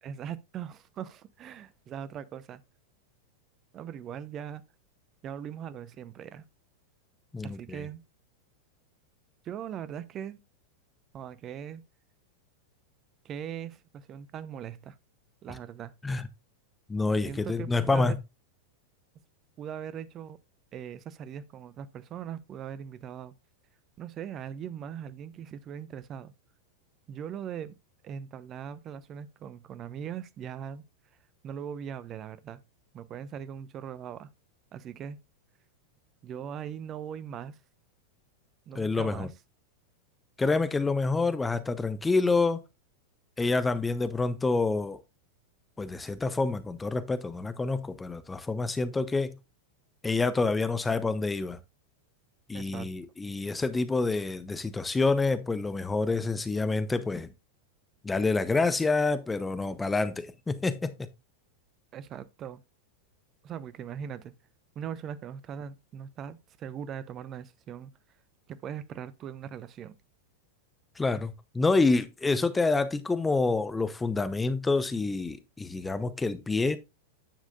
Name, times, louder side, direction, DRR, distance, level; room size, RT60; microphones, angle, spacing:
voice 1, 0.0-2.6 3.7-4.6 5.2-6.4 7.4-8.0 9.4-10.4 11.1-11.8 13.2-15.0 15.4-15.9 17.2-18.2 19.6-20.4 20.7-23.3 24.0-26.3 27.1-27.7 28.0-30.8 31.4-32.6 32.9-34.3 34.7-35.2 36.2-37.6 38.7-39.3 52.5-52.9 61.9-62.6 63.4-64.3 64.7-67.9 68.5-69.9, right 8 dB, 30° right, 0.8 m, -40 dB
voice 2, 7.3-7.9 16.0-16.2 16.9-18.2 38.7-39.3 40.4-42.6 43.4-45.0 45.8-49.4 50.0-51.6 52.5-57.3 58.0-61.1 71.0-76.8, left 3 dB, 10° left, 0.8 m, -27 dB
10.0 x 7.4 x 2.4 m
figure-of-eight pair, 90°, 0 cm